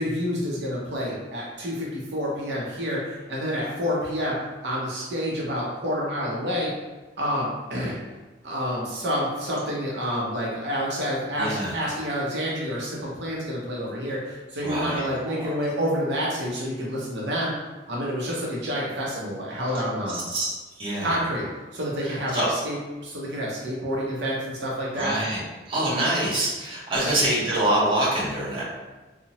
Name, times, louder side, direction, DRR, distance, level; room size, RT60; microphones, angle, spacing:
voice 1, 0.0-4.3 4.6-6.7 7.2-8.0 8.4-17.5 17.9-20.2 21.0-21.5 21.7-22.8 23.0-25.2 27.0-27.1, equal, 70° right, -4 dB, 0.6 m, -28 dB
voice 2, 11.4-11.8 14.6-15.5 20.3-21.2 22.0-22.5 24.9-28.6, right 1 dB, 30° right, -8 dB, 0.8 m, -26 dB
2.7 x 2.0 x 2.8 m, 1.2 s
head